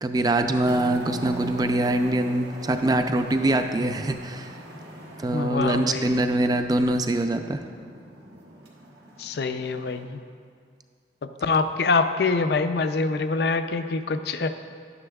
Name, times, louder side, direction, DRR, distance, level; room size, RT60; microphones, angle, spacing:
voice 1, 0.0-4.5 5.2-7.6, right 1 dB, 20° right, 7 dB, 0.4 m, -24 dB
sound 1, 0.6-10.0, right 1 dB, 90° right, 1.7 m, -40 dB
voice 2, 5.3-6.2 9.2-10.2 11.2-14.5, left 4 dB, 65° left, 9 dB, 0.4 m, -25 dB
12.0 x 9.6 x 2.3 m, 2.1 s
head